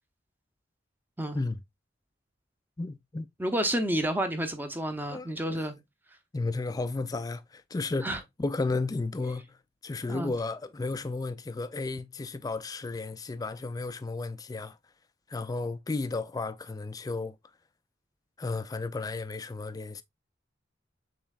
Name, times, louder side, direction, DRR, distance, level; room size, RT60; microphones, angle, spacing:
voice 1, 2.8-3.3 5.1-5.6 6.3-9.6 9.8-14.8 15.3-17.4 18.4-20.0, left 3 dB, 20° left, 0.3 m, -33 dB
voice 2, 3.4-5.8 8.0-8.2 10.1-10.3, right 1 dB, 10° right, 0.7 m, -30 dB
7.1 x 3.1 x 2.4 m
head